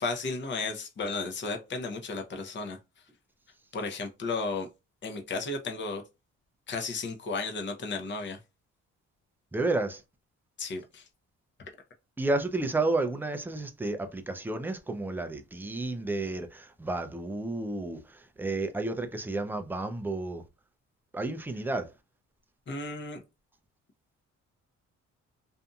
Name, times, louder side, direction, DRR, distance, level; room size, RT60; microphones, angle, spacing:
voice 1, 0.0-2.8 3.7-4.7 5.0-6.0 6.7-8.4 10.6-11.0 22.7-23.2, left 3 dB, 40° left, 0.7 m, -34 dB
voice 2, 9.5-10.0 12.2-20.4 21.1-21.9, right 2 dB, 5° right, 0.4 m, -31 dB
2.6 x 2.6 x 2.3 m
cardioid pair, 90°, 30 cm